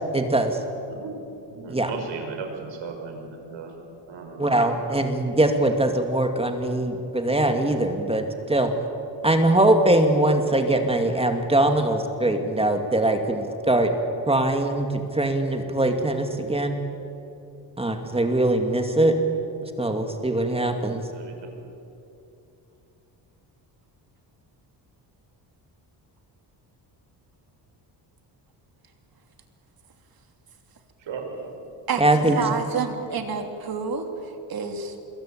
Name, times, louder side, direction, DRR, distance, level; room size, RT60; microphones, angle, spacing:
voice 1, 0.1-0.6 1.7-1.9 4.4-8.7 9.2-13.9 14.3-16.8 17.8-19.1 19.8-21.0 32.0-32.4, right 1 dB, 15° right, 5 dB, 2.4 m, -22 dB
voice 2, 1.5-3.7 4.1-4.5 21.1-21.5 31.0-31.7, right 5 dB, 75° right, 3 dB, 5.9 m, -36 dB
voice 3, 31.9-34.1 34.5-34.9, right 5 dB, 50° right, 5 dB, 3.2 m, -28 dB
26.5 x 22.5 x 8.9 m, 2.8 s
cardioid pair, 120°, 45 cm